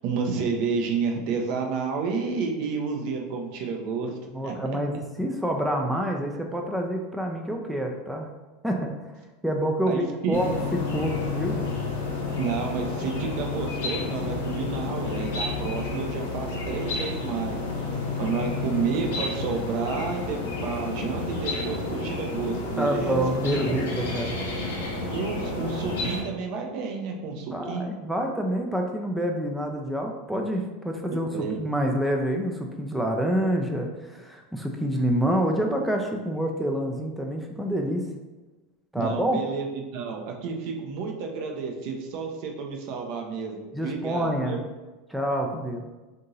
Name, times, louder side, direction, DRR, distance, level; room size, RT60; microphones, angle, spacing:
voice 1, 0.0-4.6 9.9-10.4 12.4-17.9 18.2-23.2 25.1-27.9 31.3-31.6 39.0-44.6, right 5 dB, 50° right, 2 dB, 0.6 m, -30 dB
voice 2, 4.3-8.3 8.6-8.9 9.4-11.6 22.8-24.3 27.5-38.0 38.9-39.4 43.7-44.6 45.1-45.8, equal, 5° right, 2 dB, 0.4 m, -27 dB
sound 1, 10.3-26.2, left 3 dB, 65° left, 0.8 m, -30 dB
3.6 x 2.6 x 4.0 m, 1.2 s
figure-of-eight pair, 80°, 0 cm